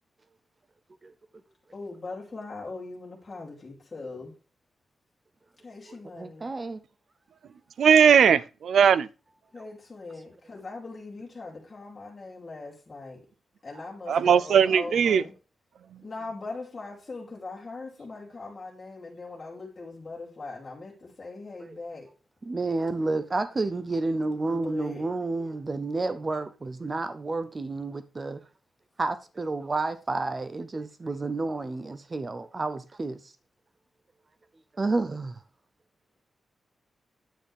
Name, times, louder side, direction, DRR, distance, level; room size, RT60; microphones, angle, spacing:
voice 1, 1.7-4.3 5.6-6.5 9.5-13.2 13.6-15.3 16.0-22.1 24.4-25.1, left 3 dB, 25° left, 2.9 m, -40 dB
voice 2, 6.1-6.8 21.6-21.7 22.4-28.4 29.0-33.3 34.8-35.4, right 3 dB, 25° right, 0.5 m, -30 dB
voice 3, 7.8-9.1 14.1-15.2, right 7 dB, 90° right, 0.4 m, -19 dB
9.0 x 8.4 x 3.4 m
wide cardioid pair, 155°, 0 cm